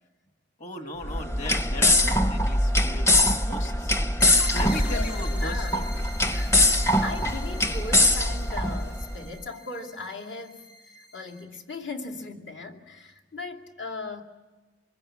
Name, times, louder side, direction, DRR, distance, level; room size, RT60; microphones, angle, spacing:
voice 1, 0.6-4.2 4.5-6.1, left 2 dB, 40° left, 6 dB, 1.9 m, -37 dB
sound 1, 1.0-9.2, left 1 dB, 15° left, 0.7 m, -23 dB
sound 2, 4.2-11.4, left 2 dB, 90° left, 5.1 m, -42 dB
voice 2, 4.2-5.1 5.4-5.7 6.3-14.2, left 3 dB, 75° left, 1 dB, 2.5 m, -38 dB
25.5 x 22.5 x 8.6 m, 1.3 s
head